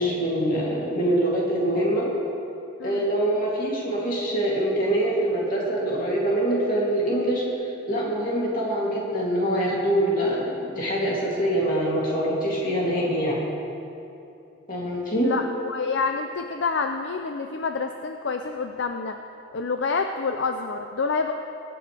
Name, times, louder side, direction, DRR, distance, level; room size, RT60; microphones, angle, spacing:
voice 1, 0.0-2.1 2.8-7.4 7.9-13.4 14.7-15.2, right 1 dB, 45° left, -5 dB, 2.8 m, -24 dB
voice 2, 15.2-19.2 19.5-21.3, left 4 dB, 65° left, 5 dB, 0.5 m, -28 dB
22.5 x 9.4 x 3.4 m, 2.7 s
head